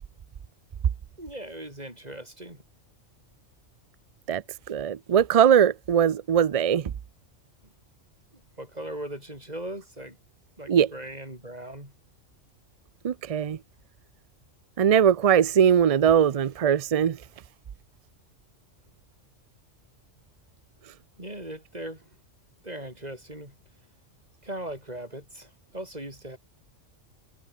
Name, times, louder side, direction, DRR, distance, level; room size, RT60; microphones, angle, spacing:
voice 1, 1.2-2.6 7.6-7.7 8.6-10.2 10.6-11.9 21.2-22.1 22.6-23.5 24.4-26.4, right 1 dB, 30° right, 6.6 m, -39 dB
voice 2, 4.7-6.8 10.7-10.9 13.0-13.6 14.8-17.2, right 8 dB, 60° right, 0.3 m, -20 dB
omnidirectional pair, 1.3 m